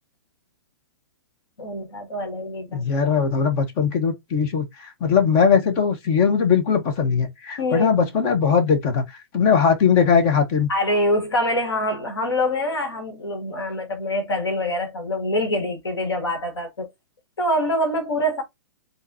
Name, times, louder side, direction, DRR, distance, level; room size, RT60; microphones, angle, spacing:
voice 1, 1.6-2.8 7.6-7.9 10.7-16.9 17.4-18.4, left 1 dB, 85° left, 1.9 m, -25 dB
voice 2, 2.7-9.0 9.3-10.7, left 6 dB, 40° left, 1.1 m, -20 dB
3.9 x 3.8 x 2.7 m
hypercardioid pair, 125°, 13 cm